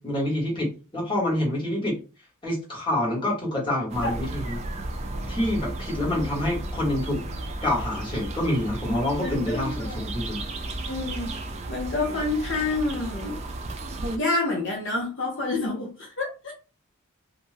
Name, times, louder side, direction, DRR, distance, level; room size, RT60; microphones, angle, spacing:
voice 1, 0.0-2.0 2.4-4.6 5.3-7.2 7.6-10.4, left 1 dB, 25° left, 1.1 m, -27 dB
sound 1, 3.9-14.2, right 2 dB, 30° right, 0.3 m, -34 dB
voice 2, 9.2-10.1 10.9-11.4 11.7-13.4 14.1-16.5, left 2 dB, 55° left, 0.8 m, -28 dB
2.5 x 2.2 x 3.2 m
head